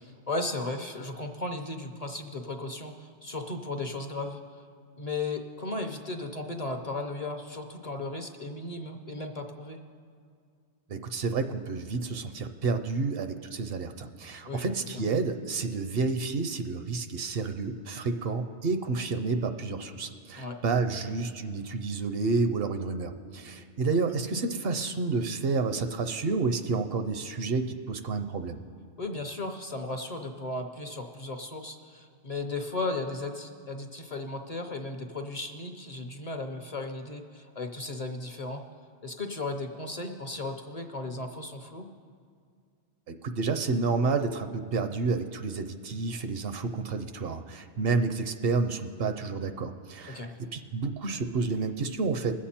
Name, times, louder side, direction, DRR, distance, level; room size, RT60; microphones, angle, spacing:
voice 1, 0.0-4.4 4.9-9.8 14.4-15.0 20.4-20.6 29.0-38.6 39.0-41.9 50.1-50.3, left 2 dB, 40° left, 5 dB, 0.7 m, -35 dB
voice 2, 10.9-28.6 43.1-52.3, right 4 dB, 65° right, 8 dB, 0.8 m, -30 dB
20.5 x 7.4 x 4.3 m, 2.2 s
omnidirectional pair, 1.1 m